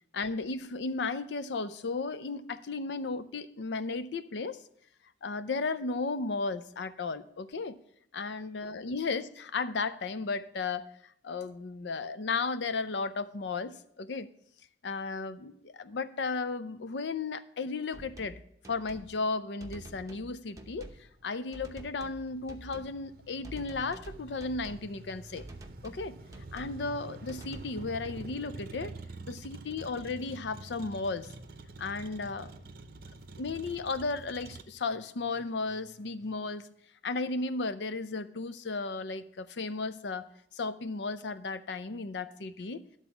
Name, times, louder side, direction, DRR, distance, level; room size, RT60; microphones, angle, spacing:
voice 1, 0.1-4.6 5.2-7.8 8.1-10.9 11.2-14.3 14.8-18.4 18.7-20.9 21.2-25.4 25.8-26.2 26.5-29.0 29.3-31.3 31.8-32.5 33.4-36.7 37.0-42.8, left 3 dB, 75° left, 13 dB, 0.5 m, -34 dB
sound 1, 17.9-18.4 18.6-19.1 19.6-20.3 20.6-21.1 21.5-22.2 22.5-23.0 23.4-24.9 25.4-26.1 26.3-26.8 27.3-27.6, right 1 dB, 20° right, 0.8 m, -47 dB
Motor vehicle (road), 20.6-34.6, right 2 dB, 55° right, 0.6 m, -47 dB
sound 2, 29.7-32.7 32.9-36.3, equal, ahead, 3.4 m, -59 dB
12.0 x 4.0 x 7.0 m, 0.71 s
head